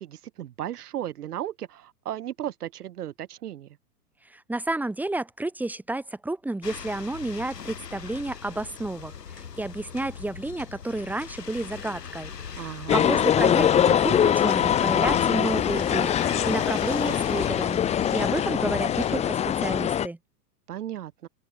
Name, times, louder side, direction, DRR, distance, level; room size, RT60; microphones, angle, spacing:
voice 1, 0.0-3.8 12.6-13.3 20.7-21.3, right 11 dB, 70° right, 1.9 m, -35 dB
voice 2, 4.3-19.4 19.6-20.2, right 2 dB, 5° right, 1.4 m, -31 dB
sound 1, 6.6-19.1, left 7 dB, 90° left, 2.5 m, -39 dB
sound 2, 12.9-20.1, left 9 dB, 15° left, 0.7 m, -23 dB
open air
hypercardioid pair, 115°, 47 cm